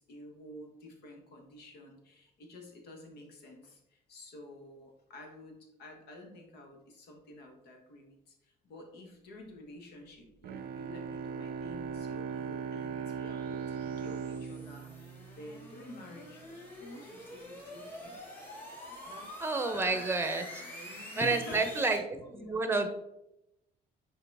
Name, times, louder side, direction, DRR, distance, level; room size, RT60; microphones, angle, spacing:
voice 1, 0.0-18.2 18.9-20.1 20.5-21.9 22.2-22.9, left 1 dB, 75° left, 2 dB, 1.6 m, -51 dB
Bowed string instrument, 10.4-16.0, right 6 dB, 65° right, 0.5 m, -39 dB
sound 1, 10.7-22.0, left 1 dB, 10° left, 2.3 m, -48 dB
voice 2, 19.4-20.6 21.2-22.0 22.3-22.9, right 3 dB, 15° right, 7 dB, 0.9 m, -29 dB
6.5 x 4.3 x 3.5 m, 0.86 s
cardioid pair, 110°, 17 cm